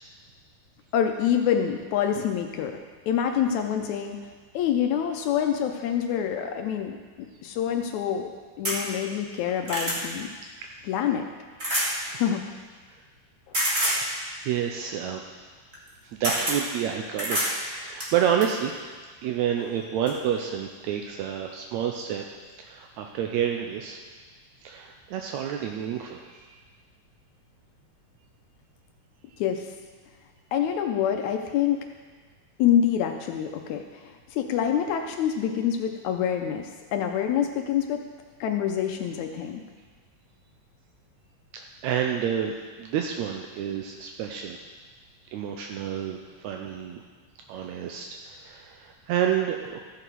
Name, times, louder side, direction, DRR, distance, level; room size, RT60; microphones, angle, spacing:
voice 1, 0.9-2.7 3.1-4.2 4.5-7.0 7.4-8.3 8.6-10.3 10.9-11.3 12.1-12.4 29.4-29.7 30.5-31.8 32.6-38.0 38.4-39.6, left 9 dB, 75° left, 5 dB, 1.8 m, -26 dB
sound 1, 8.6-8.8 9.3-10.0 11.6-11.9 13.5-14.0 15.7-15.9 16.2-16.6 17.2-17.5 18.0-18.5 19.6-19.7 20.1-20.2, equal, 25° right, 1.8 m, -26 dB
voice 2, 14.4-15.5 16.2-18.7 19.2-22.2 22.6-24.0 24.6-26.5 41.5-44.6 45.3-47.0 47.5-49.8, right 9 dB, 85° right, 3 dB, 1.7 m, -29 dB
14.0 x 6.9 x 4.6 m, 1.5 s
omnidirectional pair, 3.8 m